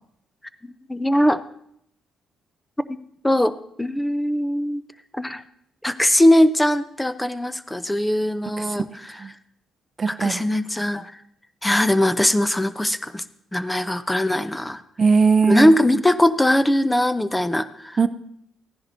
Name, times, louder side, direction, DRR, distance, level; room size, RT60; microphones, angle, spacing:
voice 1, 0.6-1.4 3.2-4.8 5.1-5.4 5.8-8.9 10.1-11.1 11.6-13.2 13.5-14.8 15.4-18.0, left 1 dB, 10° left, 13 dB, 0.6 m, -20 dB
voice 2, 10.0-10.4 15.0-15.7 18.0-18.1, right 5 dB, 35° right, 9 dB, 0.6 m, -19 dB
15.5 x 10.5 x 2.8 m, 0.71 s
cardioid pair, 90°, 0 cm